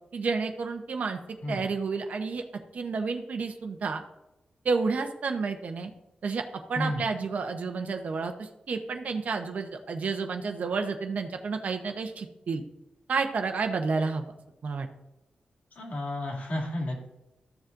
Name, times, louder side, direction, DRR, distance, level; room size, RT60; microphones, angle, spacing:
voice 1, 0.1-1.2 1.5-2.4 2.7-4.0 4.6-5.9 6.2-6.4 6.7-12.6 13.1-14.2 14.6-14.9, right 4 dB, 60° right, 4 dB, 0.9 m, -30 dB
voice 2, 1.4-1.7 6.7-7.1 15.7-17.1, left 1 dB, 65° left, -2 dB, 2.6 m, -32 dB
14.0 x 7.1 x 2.6 m, 0.92 s
wide cardioid pair, 135°, 3 cm